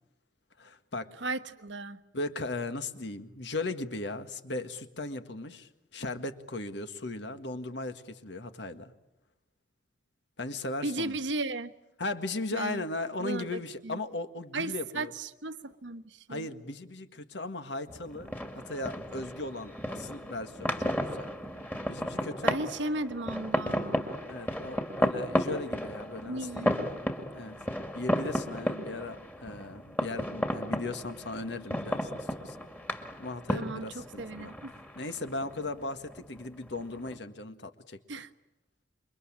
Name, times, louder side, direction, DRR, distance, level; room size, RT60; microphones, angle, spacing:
voice 1, 0.6-1.1 2.1-8.9 10.4-11.2 12.0-15.1 16.3-21.3 21.9-22.5 24.3-26.7 27.3-27.6 27.9-32.6 33.2-38.0, left 2 dB, 65° left, 9 dB, 1.8 m, -37 dB
voice 2, 1.2-2.0 10.8-11.7 12.5-12.8 13.2-14.0 14.5-16.5 22.4-24.1 26.2-27.0 33.5-34.7 38.1-38.3, right 2 dB, 75° right, 11 dB, 1.3 m, -36 dB
sound 1, 17.9-37.2, equal, 10° left, 2.2 m, -34 dB
28.5 x 24.0 x 8.8 m, 0.93 s
head